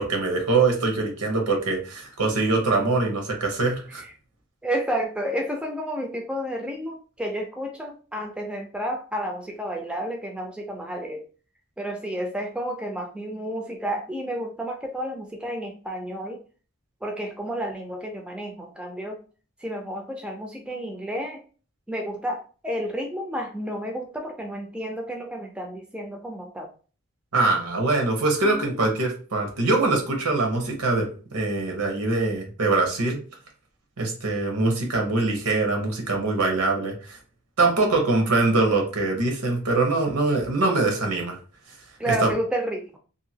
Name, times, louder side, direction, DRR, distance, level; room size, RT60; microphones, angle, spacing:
voice 1, 0.0-4.0 27.3-33.2 34.0-37.2 37.6-41.4 42.1-42.3, right 3 dB, 90° right, 2 dB, 1.0 m, -23 dB
voice 2, 4.6-11.2 11.8-16.4 17.0-19.2 19.6-21.4 21.9-26.7 28.4-28.8 42.0-43.0, equal, 5° right, 2 dB, 0.3 m, -31 dB
2.8 x 2.6 x 2.7 m, 0.38 s
head